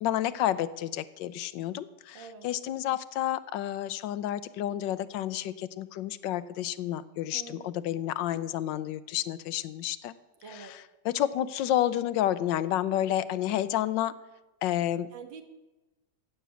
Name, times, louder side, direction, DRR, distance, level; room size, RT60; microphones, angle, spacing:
voice 1, 0.0-10.1 11.1-14.1 14.6-15.1, left 12 dB, 80° left, 15 dB, 1.3 m, -30 dB
voice 2, 2.1-2.5 7.3-7.8 10.4-10.8 15.1-15.4, right 5 dB, 85° right, 7 dB, 2.1 m, -46 dB
16.0 x 6.8 x 8.2 m, 1.1 s
omnidirectional pair, 2.0 m